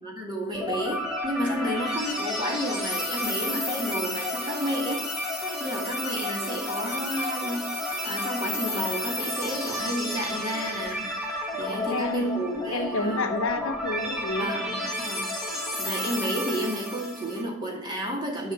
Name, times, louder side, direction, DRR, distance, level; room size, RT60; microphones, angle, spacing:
voice 1, 0.0-5.3 5.6-7.7 8.0-11.1 11.6-13.3 14.4-15.5 15.8-18.5, equal, 20° right, -1 dB, 2.3 m, -31 dB
sound 1, 0.5-17.4, left 1 dB, ahead, 1.7 m, -31 dB
voice 2, 11.7-14.5, left 2 dB, 65° left, 7 dB, 0.9 m, -30 dB
10.0 x 5.7 x 7.3 m, 0.82 s
head